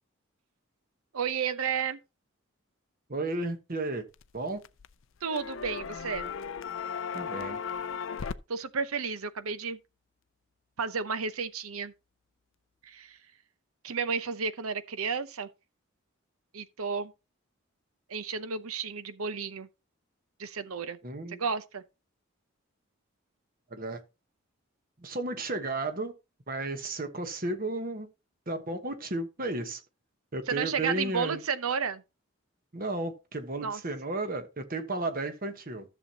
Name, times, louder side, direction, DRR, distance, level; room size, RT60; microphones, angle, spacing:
voice 1, 1.1-2.0 5.2-6.3 8.5-9.8 10.8-11.9 12.8-13.2 13.8-15.5 16.5-17.1 18.1-19.7 20.4-21.0 21.3-21.8 30.5-32.0 33.6-33.8, right 6 dB, 90° right, 0.8 m, -32 dB
voice 2, 3.1-4.0 4.3-4.6 7.1-7.6 21.0-21.4 23.7-24.0 25.0-26.1 26.5-28.1 28.5-29.8 30.3-31.4 32.7-35.8, right 2 dB, 40° right, 1.2 m, -33 dB
sound 1, 4.1-4.9 5.2-8.4, left 6 dB, 65° left, 0.4 m, -36 dB
13.5 x 7.0 x 2.9 m
head